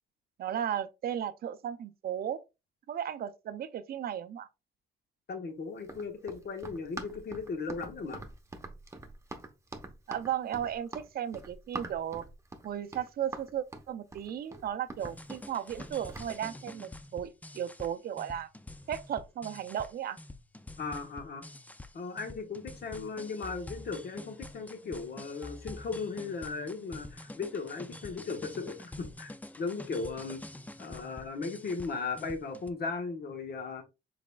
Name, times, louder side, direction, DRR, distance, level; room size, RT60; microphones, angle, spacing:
voice 1, 0.4-2.4 2.9-4.5 10.1-12.2 12.6-18.5 18.9-20.2, right 10 dB, 50° right, 0.5 m, -35 dB
voice 2, 5.3-8.2 20.8-21.4 21.9-30.4 30.8-33.8, left 4 dB, 55° left, 1.2 m, -37 dB
Run, 5.8-16.3, right 2 dB, 15° right, 0.9 m, -44 dB
sound 1, 15.0-32.7, left 2 dB, 10° left, 0.4 m, -47 dB
4.9 x 4.1 x 2.3 m
cardioid pair, 90°, 20 cm